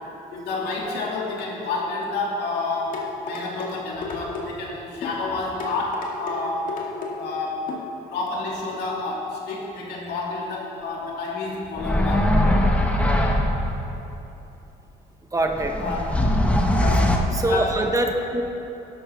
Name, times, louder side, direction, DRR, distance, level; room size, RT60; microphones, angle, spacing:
voice 1, 0.3-6.8 7.2-7.7 8.1-12.3 15.8-16.0 16.7-17.8, left 3 dB, 75° left, -3 dB, 2.7 m, -29 dB
sound 1, 2.9-3.7 4.0-4.5 5.0-5.2 5.6-6.4 6.7-7.1 7.7-7.9 8.3-8.4, left 4 dB, 55° left, 2.0 m, -33 dB
sound 2, 11.8-13.8 15.4-17.2, left 1 dB, 5° left, 1.1 m, -21 dB
voice 2, 15.3-15.7 16.4-16.6 17.3-18.4, right 1 dB, 20° right, 3 dB, 1.0 m, -24 dB
12.5 x 11.5 x 3.6 m, 2.9 s
cardioid pair, 110°, 17 cm